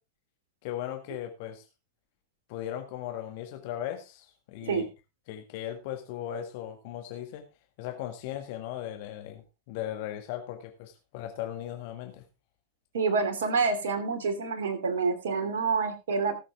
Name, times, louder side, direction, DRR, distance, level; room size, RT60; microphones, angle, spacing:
voice 1, 0.6-1.7 2.5-4.9 5.3-7.4 7.8-12.2, left 11 dB, 50° left, 5 dB, 1.7 m, -37 dB
voice 2, 12.9-16.4, right 4 dB, 60° right, 8 dB, 2.8 m, -27 dB
18.5 x 7.5 x 3.6 m, 0.28 s
figure-of-eight pair, 90°, 0 cm